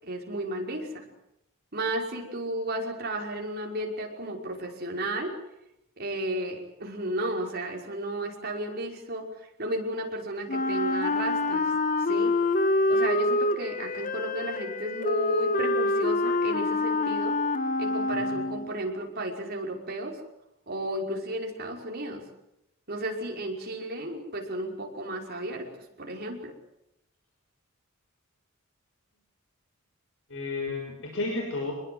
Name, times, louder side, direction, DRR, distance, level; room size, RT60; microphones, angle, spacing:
voice 1, 0.0-1.1 1.7-5.3 6.0-9.3 9.6-11.7 12.0-12.4 12.9-17.4 17.8-20.2 20.7-22.2 22.9-25.6 26.0-26.5, right 1 dB, 50° right, 0 dB, 5.7 m, -33 dB
Wind instrument woodwind instrument, 10.5-18.8, left 2 dB, 40° left, 1.5 m, -26 dB
voice 2, 30.3-31.7, left 3 dB, 65° left, 1 dB, 6.1 m, -32 dB
26.0 x 21.0 x 8.0 m, 0.85 s
head